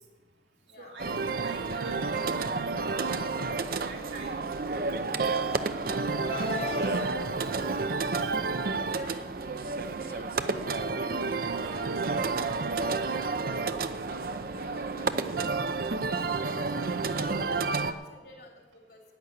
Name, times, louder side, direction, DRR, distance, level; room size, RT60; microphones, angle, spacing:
voice 1, 0.8-3.1 3.7-4.9 5.3-5.9 8.2-8.3 9.3-9.4 11.6-11.8 17.1-17.3, right 2 dB, 85° right, -1 dB, 2.7 m, -46 dB
sound 1, 1.0-17.9, right 4 dB, 55° right, 0.6 m, -30 dB
Car, 4.7-7.2, left 5 dB, 35° left, 0.6 m, -40 dB
voice 2, 8.4-10.9 11.2-12.0 12.9-19.0, left 2 dB, 65° left, 0 dB, 3.4 m, -51 dB
10.5 x 8.3 x 9.6 m, 1.3 s
head